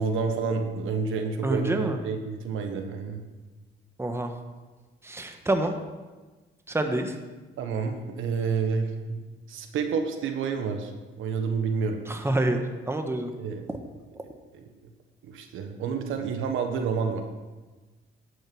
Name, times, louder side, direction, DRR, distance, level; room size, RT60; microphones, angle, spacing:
voice 1, 0.0-3.2 7.6-9.2 9.5-10.9 11.2-12.0 13.4-13.7 14.5-14.7 15.2-17.2, right 5 dB, 85° right, 5 dB, 1.2 m, -29 dB
voice 2, 1.4-2.0 4.0-4.3 5.0-5.7 6.7-7.1 12.1-12.6 12.9-13.3, right 1 dB, 10° right, 5 dB, 1.2 m, -27 dB
11.0 x 6.4 x 6.1 m, 1.3 s
cardioid pair, 90°, 20 cm